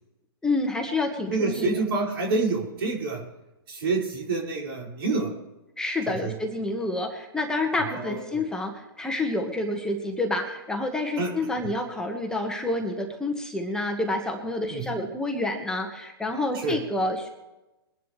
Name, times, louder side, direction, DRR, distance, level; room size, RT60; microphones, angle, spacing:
voice 1, 0.4-1.7 5.8-17.3, left 2 dB, 5° left, 2 dB, 1.5 m, -28 dB
voice 2, 1.3-3.2 3.7-5.3 6.1-6.4 7.9-8.4 11.2-11.3 14.7-15.0 16.6-16.8, right 3 dB, 65° right, -1 dB, 5.2 m, -27 dB
22.5 x 11.0 x 3.3 m, 1.0 s
hypercardioid pair, 130°, 13 cm